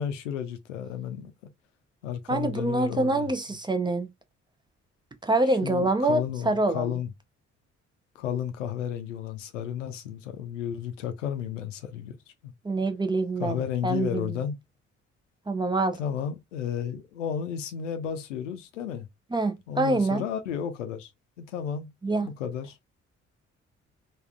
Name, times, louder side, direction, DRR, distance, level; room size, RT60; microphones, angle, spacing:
voice 1, 0.0-1.3 2.0-3.3 5.6-7.1 8.2-12.1 12.4-12.5 13.4-14.6 16.0-19.1 19.7-21.1 21.4-21.9 22.2-22.8, left 8 dB, 85° left, 0.5 m, -32 dB
voice 2, 2.3-4.1 5.2-7.0 12.6-14.4 15.5-16.0 19.3-20.2 22.0-22.3, right 2 dB, 15° right, 0.5 m, -26 dB
3.4 x 2.4 x 2.3 m
figure-of-eight pair, 40°, 37 cm